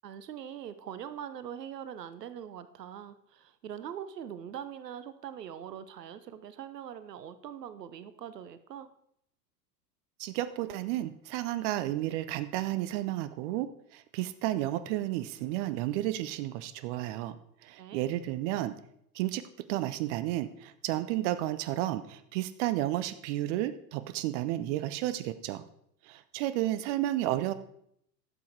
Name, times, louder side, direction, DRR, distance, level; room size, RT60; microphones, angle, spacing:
voice 1, 0.0-8.9 17.8-18.1, right 9 dB, 75° right, 13 dB, 0.9 m, -42 dB
voice 2, 10.2-17.4 17.6-18.7 19.1-19.4 19.7-25.6 26.0-27.5, right 14 dB, 45° right, 13 dB, 0.8 m, -32 dB
12.0 x 7.2 x 4.6 m, 0.72 s
figure-of-eight pair, 90°, 49 cm